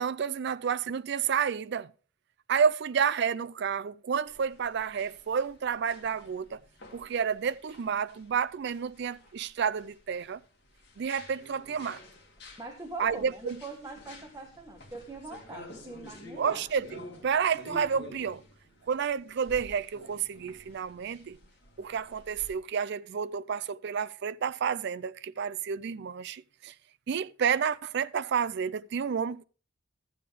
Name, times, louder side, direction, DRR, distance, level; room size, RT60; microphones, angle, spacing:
voice 1, 0.0-1.9 2.5-6.6 6.9-10.4 11.0-12.0 13.0-13.6 16.4-18.4 18.9-21.4 21.8-26.7 27.1-29.4, right 7 dB, 60° right, 0.4 m, -30 dB
sound 1, 4.3-22.5, left 1 dB, 55° left, 2.3 m, -51 dB
voice 2, 12.6-16.6, right 2 dB, 20° right, 1.2 m, -43 dB
12.5 x 8.4 x 3.4 m
head